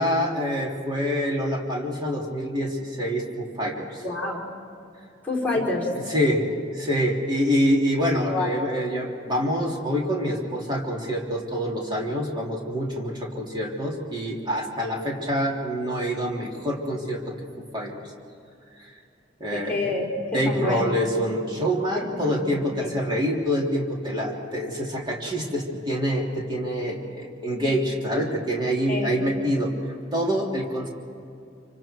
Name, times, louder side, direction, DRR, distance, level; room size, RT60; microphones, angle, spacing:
voice 1, 0.0-4.0 5.5-5.6 6.1-17.3 17.7-18.0 19.4-19.8 20.3-29.7 30.1-30.9, equal, 25° right, -2 dB, 3.3 m, -26 dB
voice 2, 4.0-4.4 5.2-5.9 8.3-8.5 19.5-20.8 21.9-22.9 28.9-29.2, left 2 dB, 10° left, -2 dB, 4.8 m, -28 dB
28.5 x 25.5 x 4.6 m, 2.6 s
head